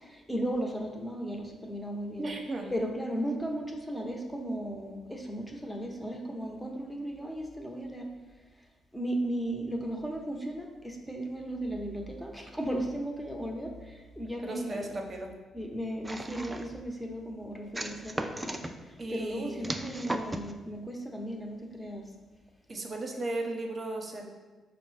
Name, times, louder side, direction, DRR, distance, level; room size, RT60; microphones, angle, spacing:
voice 1, 0.0-2.3 2.7-8.1 8.9-14.9 15.5-18.6 19.1-22.0, right 1 dB, 10° left, 1 dB, 0.8 m, -35 dB
voice 2, 2.2-2.7 14.4-15.3 19.0-19.7 22.7-24.2, right 2 dB, 40° right, 2 dB, 0.8 m, -36 dB
sound 1, 16.0-16.8 17.7-18.7 19.6-20.5, right 1 dB, 15° right, 0.4 m, -36 dB
5.1 x 2.1 x 4.8 m, 1.3 s
supercardioid pair, 55°, 0 cm